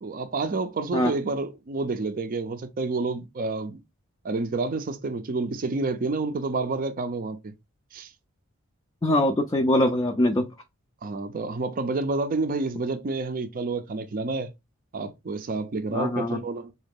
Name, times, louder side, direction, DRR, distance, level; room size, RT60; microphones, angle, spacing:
voice 1, 0.0-3.8 4.2-7.5 7.9-8.1 11.0-14.5 14.9-16.7, right 3 dB, 40° right, 0.4 m, -29 dB
voice 2, 9.0-10.5 15.9-16.4, left 1 dB, 20° left, 0.4 m, -23 dB
3.8 x 2.3 x 3.5 m
head